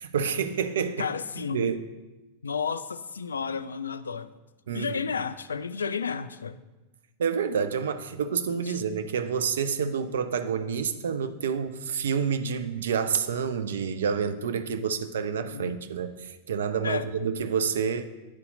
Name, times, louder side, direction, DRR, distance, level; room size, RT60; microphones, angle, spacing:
voice 1, 0.0-1.1 1.5-1.8 4.7-5.0 7.2-18.0, right 6 dB, 65° right, 10 dB, 0.4 m, -28 dB
voice 2, 1.0-1.7 2.4-4.3 4.7-6.6 8.6-8.8 15.5-15.7 16.8-17.1, left 6 dB, 70° left, 13 dB, 0.3 m, -32 dB
9.0 x 4.1 x 3.9 m, 1.1 s
figure-of-eight pair, 90°, 0 cm